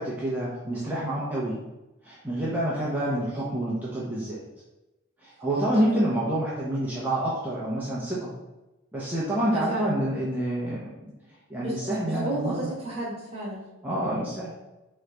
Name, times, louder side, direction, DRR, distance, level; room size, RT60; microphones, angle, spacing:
voice 1, 0.0-1.6 2.0-4.4 5.2-8.3 8.9-10.9 11.5-12.7 13.8-14.5, right 1 dB, 10° right, -7 dB, 0.6 m, -28 dB
voice 2, 9.5-9.9 11.6-13.6, right 1 dB, 25° right, -5 dB, 1.2 m, -32 dB
3.8 x 3.1 x 3.3 m, 1.0 s
head